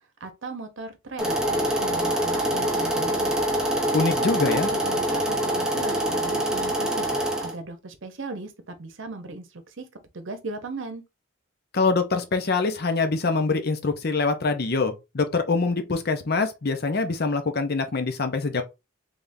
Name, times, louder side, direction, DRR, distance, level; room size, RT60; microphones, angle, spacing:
voice 1, 0.2-3.4 4.2-7.1 7.4-9.9 10.1-11.0, right 3 dB, 65° right, 0.8 m, -37 dB
sound 1, 1.2-7.5, right 1 dB, 5° right, 0.8 m, -25 dB
voice 2, 3.9-4.7 11.7-18.6, left 3 dB, 50° left, 0.6 m, -24 dB
3.6 x 3.5 x 2.6 m
head